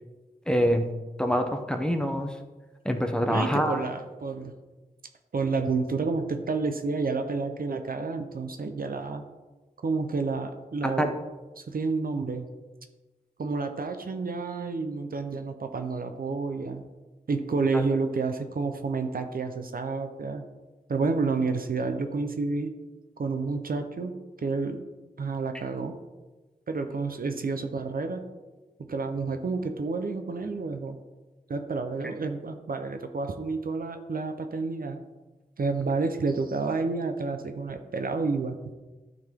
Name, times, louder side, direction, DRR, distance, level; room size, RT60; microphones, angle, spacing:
voice 1, 0.5-0.9 1.2-2.3 2.8-3.8 10.8-11.1 17.7-17.8, equal, 5° left, 4 dB, 0.8 m, -25 dB
voice 2, 3.3-4.5 5.3-9.2 9.8-11.1 11.6-12.5 13.4-16.8 17.3-20.4 20.9-22.7 23.2-24.1 24.4-24.8 25.2-25.9 26.7-28.2 28.9-31.0 31.5-35.0 35.6-38.6, right 4 dB, 70° right, 7 dB, 0.7 m, -29 dB
11.5 x 4.0 x 3.7 m, 1.2 s
wide cardioid pair, 80°, 15 cm